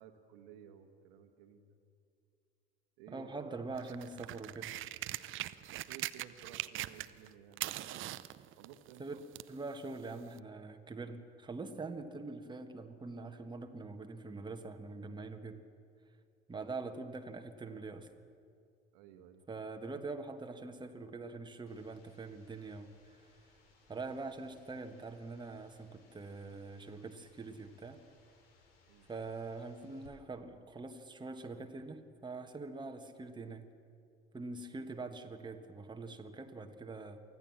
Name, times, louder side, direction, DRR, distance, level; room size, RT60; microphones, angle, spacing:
voice 1, 0.0-1.8 3.0-3.7 5.9-9.2 16.6-16.8 18.9-19.4 28.9-29.1 34.6-34.7, right 9 dB, 60° right, 5 dB, 1.5 m, -56 dB
voice 2, 3.1-4.7 9.0-9.2 9.5-15.6 16.5-18.1 19.5-23.3 23.9-28.0 29.1-33.7 34.3-37.2, right 3 dB, 15° right, 5 dB, 1.5 m, -44 dB
sound 1, 3.7-7.3 7.5-9.6 10.4-10.5, right 15 dB, 40° right, 0.7 m, -41 dB
sound 2, 21.7-30.1, left 4 dB, 65° left, 3.4 m, -67 dB
24.0 x 15.5 x 7.4 m, 2.4 s
figure-of-eight pair, 65°, 31 cm